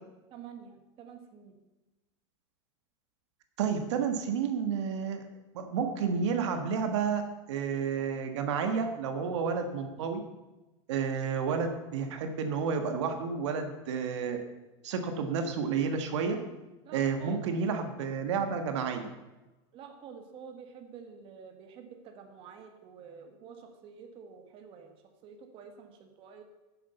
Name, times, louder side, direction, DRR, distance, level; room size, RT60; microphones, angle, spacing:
voice 1, 0.3-1.6 16.8-17.5 19.7-24.9 25.2-26.4, right 6 dB, 35° right, 4 dB, 1.6 m, -49 dB
voice 2, 3.6-5.2 5.5-7.2 7.5-10.2 10.9-14.4 14.8-16.4 16.9-19.1, right 6 dB, 80° right, 6 dB, 1.5 m, -30 dB
9.7 x 7.6 x 6.9 m, 1.1 s
supercardioid pair, 150°, 15 cm